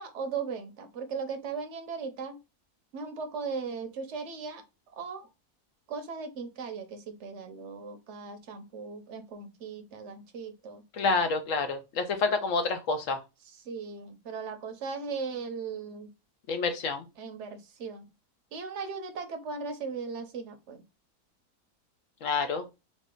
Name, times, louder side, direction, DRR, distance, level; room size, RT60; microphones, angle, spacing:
voice 1, 0.0-2.4 2.9-4.6 4.9-5.3 5.9-10.8 13.7-16.1 17.2-18.0 18.5-20.8, right 5 dB, 55° right, 7 dB, 0.9 m, -38 dB
voice 2, 10.9-13.2 16.5-17.1 22.2-22.7, left 4 dB, 65° left, 7 dB, 1.0 m, -28 dB
4.0 x 2.4 x 3.7 m, 0.25 s
omnidirectional pair, 1.6 m